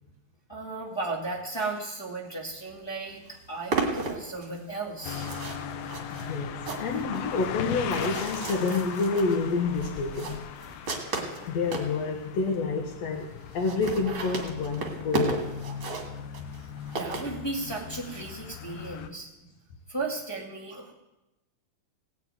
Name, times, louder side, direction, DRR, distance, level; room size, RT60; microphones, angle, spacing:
voice 1, 0.5-5.3 16.9-19.3 19.9-20.9, right 3 dB, 15° left, -4 dB, 0.7 m, -35 dB
sound 1, 2.7-2.8 3.1-11.9 12.5-12.6 12.8-12.9 13.1-13.2 13.5-17.9, right 3 dB, 40° right, 2.3 m, -35 dB
sound 2, 5.0-19.1, left 8 dB, 90° left, 2.8 m, -39 dB
voice 2, 6.1-10.4 11.5-15.6, left 4 dB, 60° left, 0 dB, 2.1 m, -28 dB
18.0 x 6.6 x 9.0 m, 0.97 s
omnidirectional pair, 4.3 m